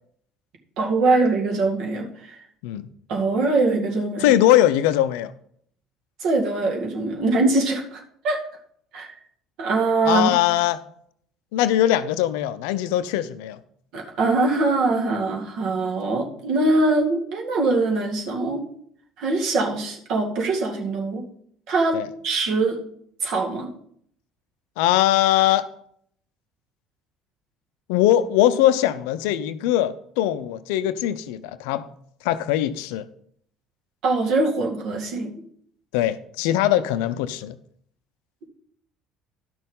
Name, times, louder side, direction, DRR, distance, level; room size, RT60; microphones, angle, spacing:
voice 1, 0.8-2.4 3.1-4.4 6.2-8.4 8.9-9.1 9.6-10.4 13.9-18.6 19.2-21.2 21.7-22.8 23.2-23.7 34.0-35.3, right 3 dB, 55° right, 1 dB, 2.1 m, -23 dB
voice 2, 4.2-5.3 10.0-10.8 11.5-13.6 21.9-22.1 24.8-25.7 27.9-31.9 32.2-33.1 35.9-37.6, left 13 dB, 70° left, 14 dB, 0.6 m, -21 dB
11.5 x 6.3 x 5.3 m, 0.65 s
figure-of-eight pair, 60°, 0 cm